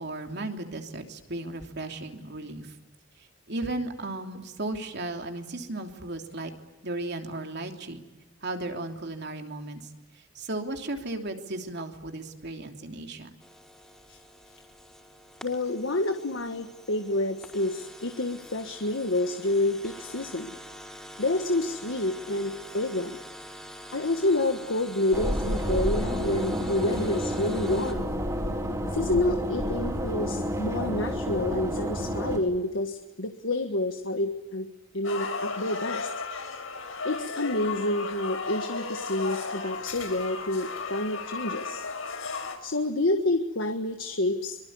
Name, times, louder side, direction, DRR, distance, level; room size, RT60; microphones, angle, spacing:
voice 1, 0.0-2.7 3.5-6.5 6.8-8.0 8.4-9.9 10.3-13.3, right 2 dB, 55° right, 4 dB, 3.1 m, -35 dB
sound 1, 13.4-27.9, equal, 5° left, 4.7 m, -46 dB
voice 2, 15.4-20.5 21.2-23.2 23.9-28.1 28.9-34.7 34.9-36.1 37.0-41.8 42.6-44.6, left 2 dB, 70° left, 7 dB, 1.6 m, -28 dB
sound 2, 25.1-32.4, equal, 15° right, 4.7 m, -30 dB
sound 3, 35.0-42.6, left 4 dB, 85° left, 5.4 m, -34 dB
24.5 x 24.0 x 9.6 m, 1.1 s
head